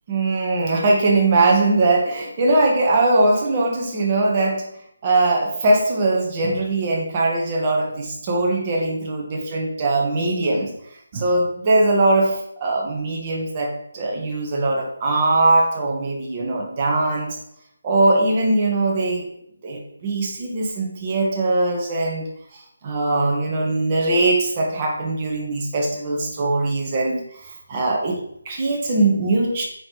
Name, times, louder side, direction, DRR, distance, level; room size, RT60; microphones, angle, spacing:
voice 1, 0.1-4.7 5.0-10.7 11.1-17.4 17.8-19.2 19.6-29.6, right 2 dB, 25° right, 0 dB, 1.3 m, -21 dB
9.0 x 3.3 x 4.6 m, 0.73 s
figure-of-eight pair, 170°, 0 cm